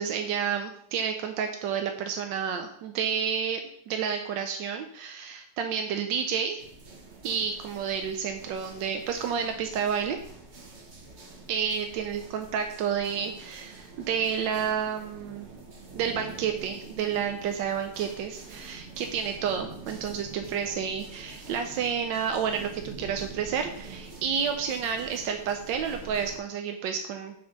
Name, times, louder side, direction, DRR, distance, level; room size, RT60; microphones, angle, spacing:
voice 1, 0.0-3.6 3.9-6.6 7.2-10.2 11.5-15.5 15.9-27.3, right 7 dB, 90° right, 5 dB, 1.3 m, -30 dB
sound 1, 6.6-26.4, right 3 dB, 45° right, 1.1 m, -46 dB
6.9 x 4.4 x 5.2 m, 0.69 s
omnidirectional pair, 1.9 m